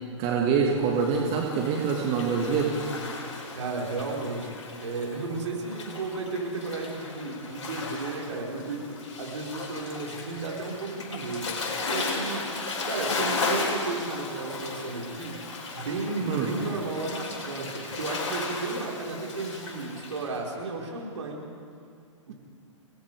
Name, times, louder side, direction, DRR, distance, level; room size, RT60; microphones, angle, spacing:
voice 1, 0.2-2.8 16.3-16.5, right 6 dB, 35° right, -1 dB, 2.5 m, -25 dB
Waves surf, 0.8-20.3, left 3 dB, 60° left, 5.2 m, -35 dB
voice 2, 3.5-4.5 4.8-11.5 11.8-12.5 12.8-15.4 15.7-21.4 22.3-22.4, right 3 dB, 65° right, -1 dB, 5.3 m, -33 dB
29.5 x 19.5 x 5.1 m, 2.2 s
figure-of-eight pair, 115°, 17 cm